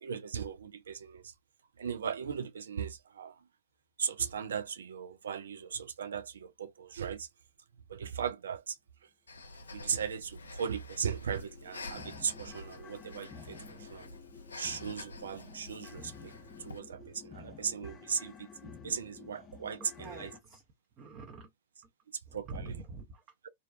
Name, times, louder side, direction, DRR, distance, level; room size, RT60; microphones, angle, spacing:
voice 1, 0.0-1.3 1.8-3.4 4.0-7.3 7.9-8.8 9.7-14.1 14.6-16.3 16.6-20.3 22.3-22.7, right 7 dB, 70° right, 0.3 m, -37 dB
Breathing, 9.3-16.8, left 2 dB, 80° left, 0.5 m, -48 dB
sound 1, 11.3-20.4, left 6 dB, 25° left, 0.7 m, -52 dB
voice 2, 19.9-20.6 21.0-21.5 22.3-23.2, right 3 dB, 35° right, 0.6 m, -46 dB
2.5 x 2.2 x 2.2 m
figure-of-eight pair, 100°, 0 cm